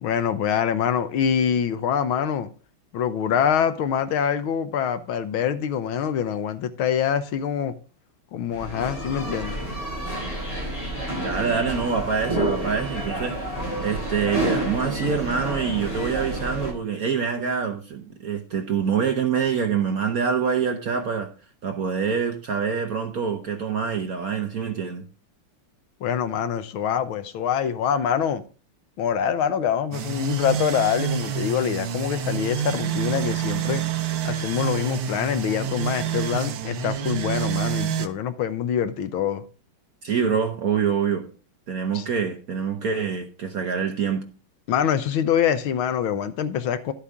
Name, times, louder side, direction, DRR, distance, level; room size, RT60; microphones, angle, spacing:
voice 1, 0.0-2.5 2.9-7.7 8.3-9.6 26.0-28.4 29.0-33.8 34.2-39.4 41.9-42.1 44.7-46.9, left 8 dB, 75° left, 1.6 m, -25 dB
sound 1, 8.5-16.7, right 1 dB, 15° left, 6.5 m, -29 dB
voice 2, 11.1-21.3 21.6-25.0 40.0-41.3 41.7-44.2, right 6 dB, 55° right, 1.1 m, -25 dB
sound 2, 29.9-38.1, right 9 dB, 80° right, 1.7 m, -28 dB
11.5 x 8.4 x 3.6 m
omnidirectional pair, 2.4 m